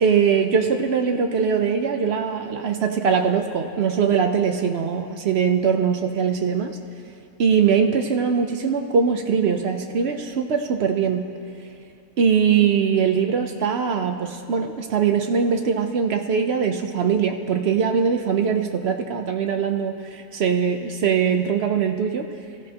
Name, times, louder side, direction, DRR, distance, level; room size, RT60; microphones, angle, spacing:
voice 1, 0.0-6.7 7.4-11.3 12.2-22.2, right 6 dB, 65° right, 5 dB, 0.6 m, -21 dB
23.5 x 14.5 x 2.9 m, 2.6 s
omnidirectional pair, 1.8 m